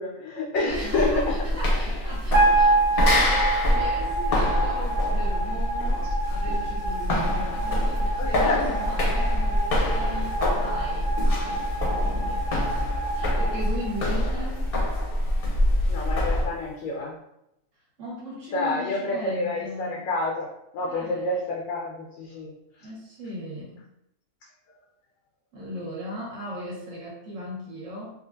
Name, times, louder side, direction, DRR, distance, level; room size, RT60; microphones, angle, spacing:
voice 1, 0.0-1.3 6.0-6.1 8.2-8.7 15.9-17.2 18.5-20.5 20.7-22.9, left 2 dB, 75° left, -2 dB, 0.9 m, -28 dB
voice 2, 0.6-11.7 11.9-12.5 13.1-14.7 18.0-20.1 20.8-21.2 22.8-23.9 25.5-28.1, equal, 65° right, -7 dB, 1.5 m, -37 dB
sound 1, 0.7-16.5, left 1 dB, 50° left, 0.8 m, -25 dB
sound 2, 2.3-14.6, right 3 dB, 80° right, 1.3 m, -28 dB
3.6 x 2.4 x 2.5 m, 0.83 s
omnidirectional pair, 1.5 m